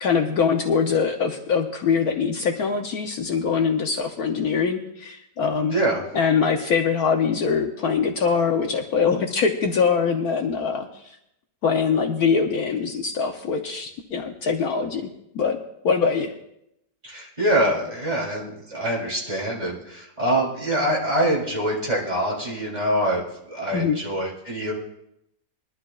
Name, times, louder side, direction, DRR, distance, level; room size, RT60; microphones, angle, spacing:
voice 1, 0.0-5.7 6.1-10.9 11.6-15.0 15.3-15.6 15.8-16.3 23.7-24.0, left 6 dB, 65° left, 4 dB, 1.2 m, -23 dB
voice 2, 5.7-6.0 17.0-24.7, right 1 dB, 25° right, -4 dB, 3.4 m, -24 dB
22.0 x 12.0 x 2.4 m, 0.81 s
omnidirectional pair, 1.8 m